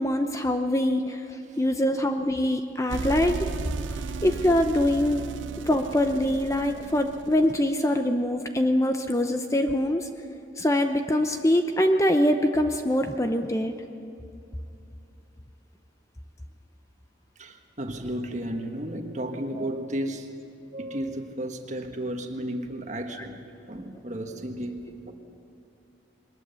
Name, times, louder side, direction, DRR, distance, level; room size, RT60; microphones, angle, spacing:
voice 1, 0.0-3.5 3.9-5.2 5.7-10.1 10.6-13.8 23.1-23.3, left 1 dB, 15° left, 6 dB, 0.7 m, -24 dB
sound 1, 2.9-7.7, right 4 dB, 80° right, 0.5 m, -35 dB
voice 2, 17.4-20.3 20.7-25.1, right 1 dB, 40° right, 4 dB, 1.5 m, -33 dB
21.5 x 20.0 x 7.0 m, 2.6 s
head